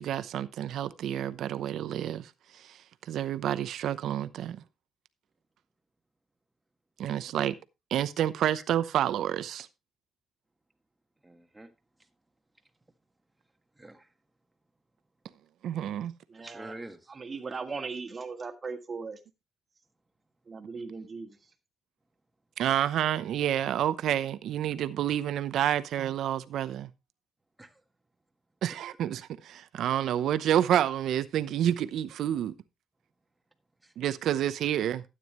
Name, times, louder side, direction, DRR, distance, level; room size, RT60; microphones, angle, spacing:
voice 1, 0.0-2.3 2.6-2.8 3.1-4.6 7.0-7.5 7.9-9.7 15.6-16.1 22.6-26.9 28.6-32.5 34.0-35.0, right 11 dB, 75° right, 0.8 m, -29 dB
voice 2, 11.2-11.7 13.8-14.1 16.4-17.2 27.6-27.8 33.8-33.9, right 1 dB, 10° right, 1.6 m, -47 dB
voice 3, 16.3-16.7 17.1-19.2 20.5-21.4, right 4 dB, 35° right, 1.8 m, -38 dB
12.5 x 9.2 x 3.1 m
cardioid pair, 100°, 0 cm